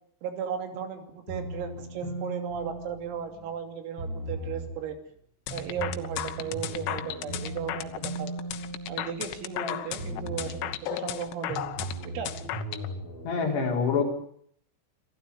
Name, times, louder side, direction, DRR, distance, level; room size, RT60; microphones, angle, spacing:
voice 1, 0.2-5.0 5.5-8.3 8.9-12.3, right 7 dB, 80° right, 7 dB, 5.5 m, -36 dB
sound 1, 1.3-3.5 4.0-4.8 5.5-9.6 10.0-10.8 11.5-13.3, right 1 dB, 25° left, 8.3 m, -38 dB
sound 2, 5.5-12.9, left 13 dB, 85° left, 3.9 m, -35 dB
voice 2, 13.2-14.0, left 5 dB, 55° left, 2 dB, 5.9 m, -26 dB
27.0 x 16.0 x 9.7 m, 0.66 s
omnidirectional pair, 6.0 m